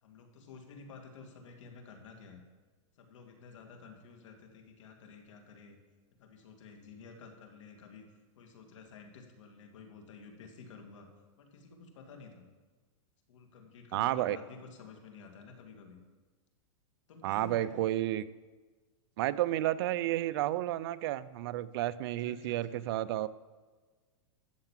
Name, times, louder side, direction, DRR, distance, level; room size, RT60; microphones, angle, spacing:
voice 1, 0.0-2.4 3.0-5.8 6.2-8.0 8.4-11.1 11.4-12.5 13.3-16.0 17.1-17.7 22.0-22.8, left 5 dB, 75° left, 4 dB, 2.5 m, -52 dB
voice 2, 13.9-14.4 17.2-18.2 19.2-23.3, right 14 dB, 50° right, 15 dB, 0.5 m, -31 dB
13.5 x 6.7 x 7.5 m, 1.4 s
supercardioid pair, 155°, 16 cm